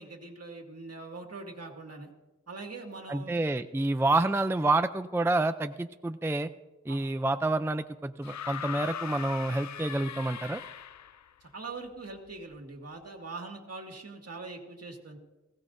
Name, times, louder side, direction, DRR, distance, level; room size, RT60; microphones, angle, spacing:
voice 1, 0.0-2.1 2.5-3.5 6.9-7.0 11.5-15.2, right 3 dB, 55° right, 2 dB, 2.1 m, -42 dB
voice 2, 3.1-6.5 6.9-10.6, right 2 dB, 10° right, 10 dB, 0.4 m, -28 dB
sound 1, 8.2-11.3 12.5-12.6, left 9 dB, 70° left, 0.5 m, -39 dB
19.5 x 17.0 x 2.6 m, 1.1 s
wide cardioid pair, 85°, 29 cm